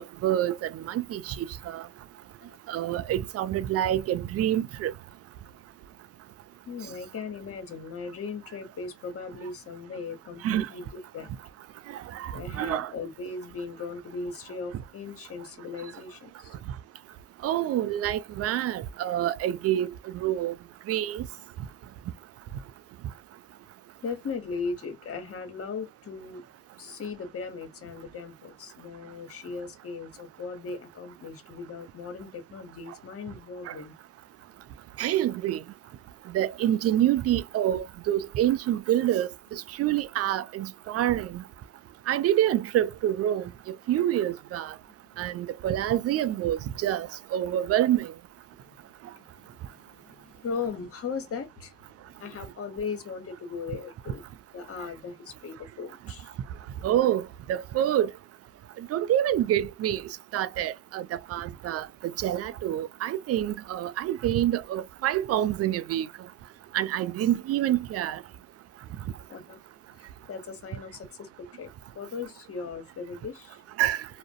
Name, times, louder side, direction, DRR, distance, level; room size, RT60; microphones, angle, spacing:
voice 1, 0.0-1.8 2.7-4.9 10.4-10.7 12.1-12.9 17.4-20.6 20.9-21.3 33.7-33.8 35.0-35.6 36.3-41.4 42.1-43.5 43.9-44.7 45.2-48.1 56.8-58.1 58.8-61.9 62.2-66.1 66.7-68.2 73.8-74.1, right 12 dB, 55° right, 0.4 m, -27 dB
voice 2, 2.4-3.1 6.7-11.3 12.3-16.6 24.0-26.4 26.8-34.0 45.2-45.3 48.5-48.8 49.1-51.8 52.2-54.2 54.5-56.4 69.3-69.6 69.9-71.7 71.9-73.6, left 5 dB, 50° left, 1.0 m, -38 dB
2.4 x 2.0 x 2.5 m
hypercardioid pair, 50°, 30 cm